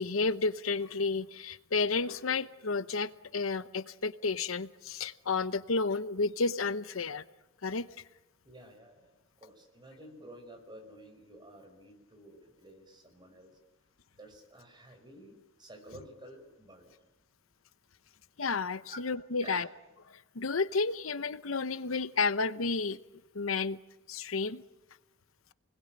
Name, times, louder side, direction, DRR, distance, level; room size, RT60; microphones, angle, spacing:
voice 1, 0.0-7.2 7.6-7.9 18.4-19.7 20.1-23.0 23.3-23.8 24.1-24.6, left 4 dB, 90° left, 0.9 m, -31 dB
voice 2, 8.4-13.5 14.2-17.0 18.9-19.0 19.4-19.7, right 1 dB, 20° right, 5.2 m, -51 dB
29.0 x 21.0 x 8.9 m
head